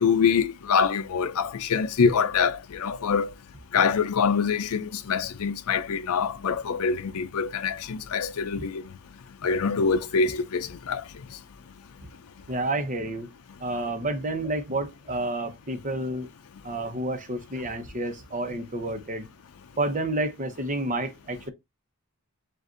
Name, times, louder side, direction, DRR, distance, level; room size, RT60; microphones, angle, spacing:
voice 1, 0.0-3.3 3.7-8.8 9.4-11.0, left 5 dB, 80° left, 0.5 m, -25 dB
voice 2, 12.5-13.3 13.6-16.3 16.6-19.3 19.8-21.5, right 2 dB, 35° right, 0.9 m, -30 dB
7.4 x 2.5 x 2.5 m
head